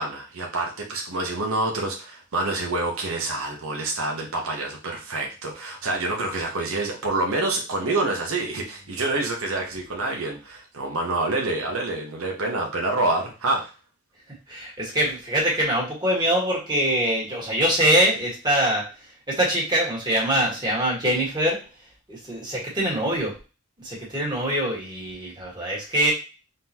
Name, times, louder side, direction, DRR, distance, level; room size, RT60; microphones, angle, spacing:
voice 1, 0.0-13.7, right 2 dB, 85° right, 1 dB, 1.0 m, -27 dB
voice 2, 14.5-18.9 19.3-21.6 22.1-23.4 23.8-26.1, right 1 dB, 20° right, -4 dB, 1.6 m, -23 dB
3.8 x 3.8 x 2.9 m, 0.32 s
head